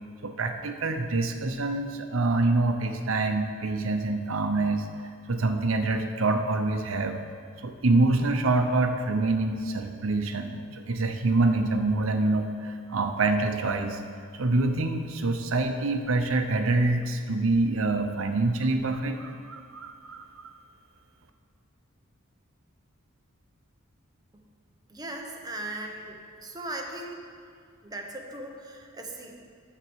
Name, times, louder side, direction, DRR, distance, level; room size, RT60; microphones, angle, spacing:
voice 1, 0.2-4.8 5.3-7.2 7.6-14.0 14.3-20.5, right 2 dB, 70° right, 6 dB, 0.8 m, -26 dB
voice 2, 24.9-27.3 27.8-29.4, right 1 dB, 20° right, 1 dB, 1.0 m, -38 dB
7.6 x 6.9 x 6.2 m, 2.3 s
head